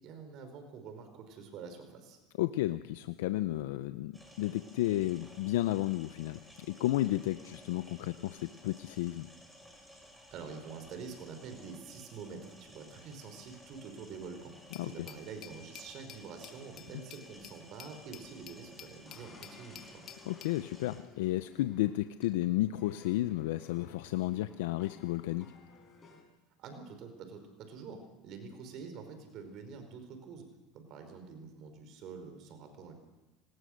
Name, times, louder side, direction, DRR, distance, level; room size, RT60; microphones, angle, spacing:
voice 1, 0.0-2.2 10.3-14.5 14.8-20.0 26.6-28.0 28.2-30.5 30.7-32.9, right 5 dB, 55° right, 7 dB, 4.8 m, -46 dB
voice 2, 2.4-9.3 14.8-15.1 20.3-25.5, left 15 dB, 85° left, 12 dB, 0.7 m, -32 dB
sound 1, 4.1-21.0, equal, 5° right, 5.7 m, -57 dB
Glass, 14.7-20.6, left 9 dB, 45° left, 1.6 m, -52 dB
sound 2, 19.1-26.2, left 4 dB, 25° left, 6.7 m, -58 dB
27.0 x 19.5 x 6.5 m, 1.1 s
supercardioid pair, 120°, 0 cm